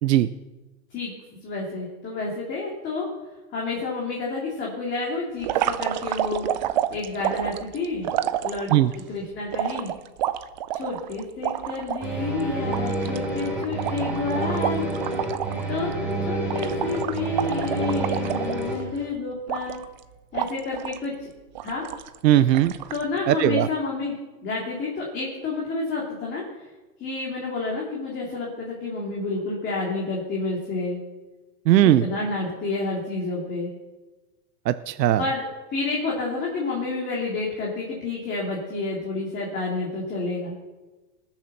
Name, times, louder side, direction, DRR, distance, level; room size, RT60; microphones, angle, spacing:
voice 1, 1.4-3.1 3.5-6.5 6.9-8.1 8.4-8.7 9.1-9.9 10.7-14.8 15.7-15.9 16.2-19.8 20.3-21.3 21.6-21.8 22.9-26.7 27.0-31.0 31.8-33.7 35.2-35.4 35.7-40.5, left 3 dB, 20° left, -3 dB, 2.8 m, -29 dB
sound 1, 5.4-9.0 9.5-12.0 12.4-12.5 12.7-15.6 15.9-16.1 16.5-19.0 19.5-20.0 20.3-21.0 21.6-22.2 22.5-23.0, right 12 dB, 30° right, 0.4 m, -29 dB
sound 2, 12.0-18.7, right 2 dB, 5° right, 3.4 m, -28 dB
voice 2, 22.2-22.7 23.3-23.7 31.7-32.1 34.7-35.2, right 13 dB, 85° right, 13 dB, 0.7 m, -18 dB
19.5 x 7.5 x 6.7 m, 1.2 s
supercardioid pair, 150°, 48 cm